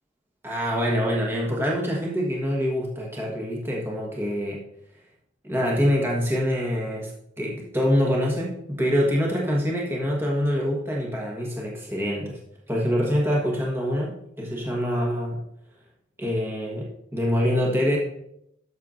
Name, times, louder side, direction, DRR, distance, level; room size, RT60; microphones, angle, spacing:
voice 1, 0.4-4.6 5.4-12.4 12.7-15.4 16.2-18.0, equal, 10° right, -3 dB, 1.3 m, -25 dB
12.5 x 6.6 x 2.6 m, 0.75 s
head